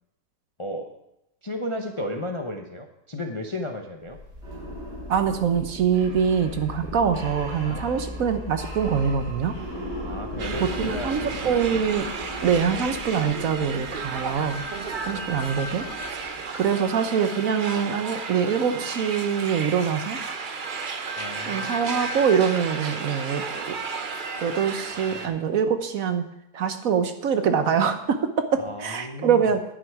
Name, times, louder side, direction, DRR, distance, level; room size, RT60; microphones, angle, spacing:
voice 1, 0.6-1.0 1.4-4.2 7.6-8.2 10.0-11.8 15.0-15.3 21.2-22.1 28.6-29.4, left 1 dB, 30° left, 4 dB, 0.5 m, -34 dB
sound 1, 4.0-16.8, equal, 80° right, 5.3 m, -37 dB
voice 2, 5.1-9.6 10.6-12.1 12.4-14.7 15.0-15.9 16.6-20.2 21.5-23.8 24.4-26.2 26.5-29.6, right 7 dB, 60° right, 9 dB, 1.1 m, -24 dB
sound 2, 10.4-25.3, right 4 dB, 40° right, 0.7 m, -33 dB
10.0 x 9.6 x 4.8 m, 0.82 s
omnidirectional pair, 1.8 m